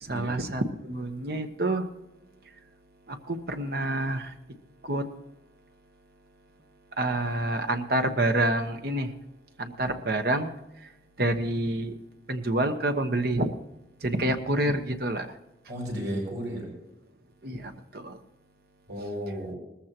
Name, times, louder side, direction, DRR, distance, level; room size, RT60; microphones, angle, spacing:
voice 1, 0.0-1.8 3.1-4.3 4.8-5.0 7.0-9.1 9.6-10.5 11.2-11.9 12.3-13.5 14.0-15.3 17.4-18.2, right 1 dB, 60° right, 6 dB, 1.2 m, -27 dB
voice 2, 15.7-16.7 18.9-19.6, equal, 75° right, -2 dB, 6.4 m, -33 dB
19.5 x 14.5 x 3.0 m, 0.94 s
head